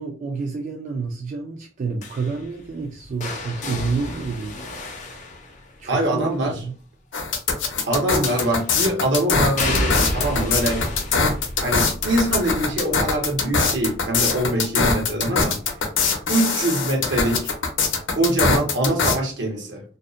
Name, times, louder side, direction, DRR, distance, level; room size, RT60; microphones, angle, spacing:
voice 1, 0.0-4.6 5.8-6.7, right 4 dB, 40° right, 0.3 m, -29 dB
sound 1, 2.0-6.1 8.3-8.9 9.6-15.4 15.7-16.1 17.4-17.5, left 1 dB, 40° left, 0.5 m, -31 dB
voice 2, 5.9-6.5 7.9-10.9 11.6-15.6 16.3-17.5 18.1-19.8, right 1 dB, 65° right, 0.8 m, -23 dB
sound 2, 7.1-19.2, left 4 dB, 80° left, 0.6 m, -22 dB
2.6 x 2.0 x 2.4 m
head